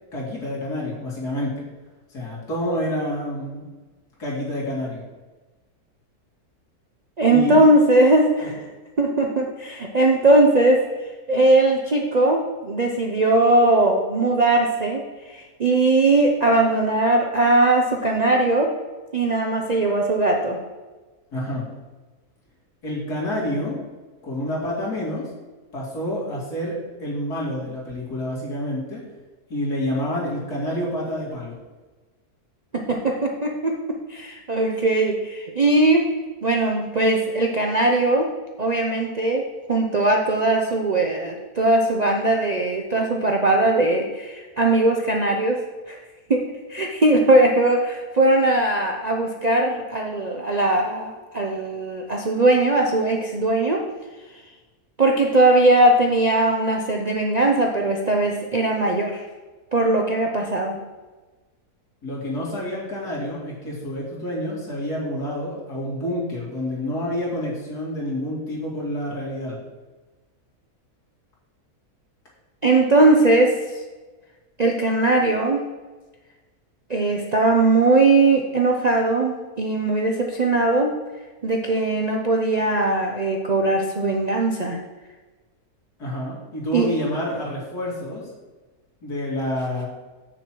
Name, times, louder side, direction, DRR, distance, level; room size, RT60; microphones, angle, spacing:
voice 1, 0.1-1.5 2.1-3.7 4.2-5.0 7.3-7.6 8.4-8.6 21.3-21.7 22.8-23.8 24.2-25.3 25.7-29.0 29.5-31.5 62.0-69.6 86.0-88.2 89.0-89.9, left 1 dB, 85° left, -5 dB, 2.9 m, -28 dB
voice 2, 7.2-8.6 9.0-10.8 11.3-18.7 19.1-20.6 32.7-36.0 36.4-38.3 38.6-45.6 45.9-46.0 46.3-46.4 46.7-53.8 55.0-59.2 59.7-60.8 72.6-73.8 74.6-75.6 76.9-80.9 81.4-84.8 86.7-86.9, right 2 dB, 50° right, 1 dB, 0.5 m, -19 dB
7.4 x 6.5 x 4.6 m, 1.2 s
omnidirectional pair, 1.6 m